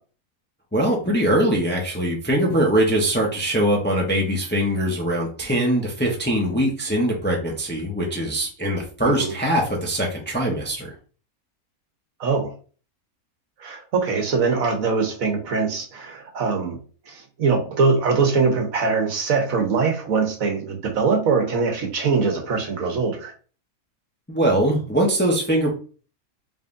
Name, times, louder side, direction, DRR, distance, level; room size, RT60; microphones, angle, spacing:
voice 1, 0.7-10.9 24.3-25.7, right 1 dB, 10° left, -1 dB, 0.7 m, -22 dB
voice 2, 9.0-9.3 12.2-12.5 13.6-16.8 17.1-23.3, right 4 dB, 65° right, 3 dB, 1.3 m, -22 dB
5.2 x 3.3 x 2.6 m, 0.38 s
omnidirectional pair, 1.6 m